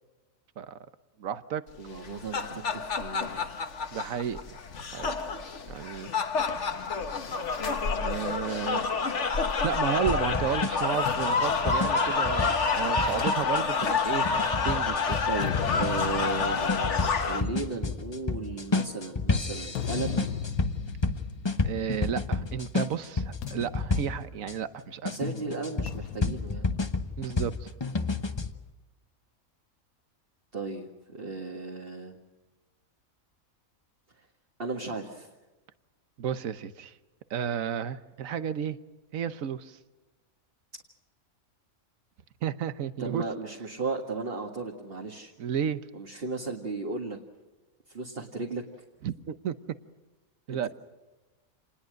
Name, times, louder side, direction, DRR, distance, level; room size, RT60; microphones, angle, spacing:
voice 1, 1.2-1.6 3.9-4.4 4.9-5.1 5.7-6.1 8.0-8.9 9.6-14.3 14.6-15.2 21.6-25.2 27.2-27.7 36.2-36.9 37.3-38.8 39.1-39.8 42.4-43.2 45.4-45.8 49.0-49.5 50.5-50.7, right 8 dB, 75° right, 13 dB, 1.4 m, -32 dB
voice 2, 1.8-3.7 15.2-20.3 25.1-26.7 30.5-32.2 34.6-35.3 43.0-45.3 45.9-47.2 47.9-48.6 50.5-50.7, right 3 dB, 40° right, 1 dB, 2.1 m, -35 dB
sound 1, 2.0-17.4, left 5 dB, 55° left, 1.7 m, -28 dB
sound 2, 10.1-24.5 25.1-28.5, left 3 dB, 20° left, 0.9 m, -31 dB
sound 3, 11.1-14.7 15.2-22.6 22.8-23.1 23.4-25.0 25.9-27.6, left 8 dB, 85° left, 1.4 m, -39 dB
28.0 x 20.5 x 6.5 m, 1.2 s
omnidirectional pair, 1.5 m